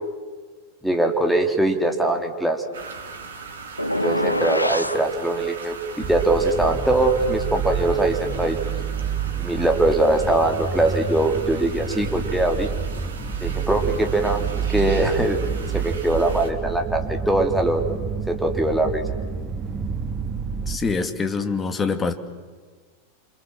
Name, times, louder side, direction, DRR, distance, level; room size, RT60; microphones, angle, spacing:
voice 1, 0.8-2.6 4.0-8.6 9.4-12.7 13.4-14.4 14.7-15.4 15.7-17.9 18.3-19.0, right 1 dB, ahead, 2 dB, 3.3 m, -22 dB
sound 1, 2.7-16.5, right 4 dB, 65° right, 3.3 m, -39 dB
sound 2, 3.8-5.0, left 1 dB, 85° left, 0.9 m, -24 dB
sound 3, 6.0-20.8, right 6 dB, 25° right, 2.0 m, -29 dB
voice 2, 20.7-22.1, left 4 dB, 20° left, 8 dB, 2.2 m, -24 dB
29.0 x 26.5 x 7.6 m, 1.5 s
figure-of-eight pair, 90°, 0 cm